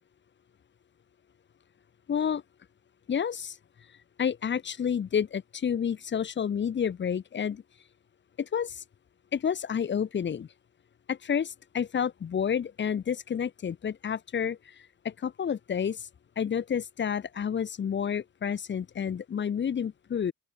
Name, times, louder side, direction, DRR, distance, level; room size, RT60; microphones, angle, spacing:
voice 1, 2.1-2.4 3.1-3.6 4.2-7.6 8.4-8.8 9.3-10.5 11.1-14.6 15.0-16.1 16.4-20.3, left 7 dB, 40° left, 0.9 m, -30 dB
open air
cardioid pair, 90°, 30 cm